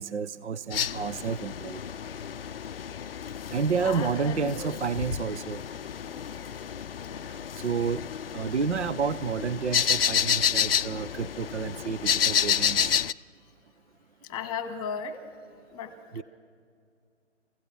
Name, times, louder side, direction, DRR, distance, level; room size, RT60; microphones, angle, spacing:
voice 1, 0.0-1.8 3.5-5.6 7.6-8.0 8.3-12.9 16.1-16.2, right 5 dB, 65° right, 15 dB, 0.7 m, -30 dB
sound 1, 0.7-13.1, left 8 dB, 50° left, 0.5 m, -30 dB
voice 2, 3.7-4.7 6.0-6.2 7.0-7.3 14.3-15.2 15.7-16.2, left 6 dB, 10° left, 9 dB, 1.5 m, -36 dB
28.5 x 16.0 x 6.2 m, 2.2 s
figure-of-eight pair, 135°, 36 cm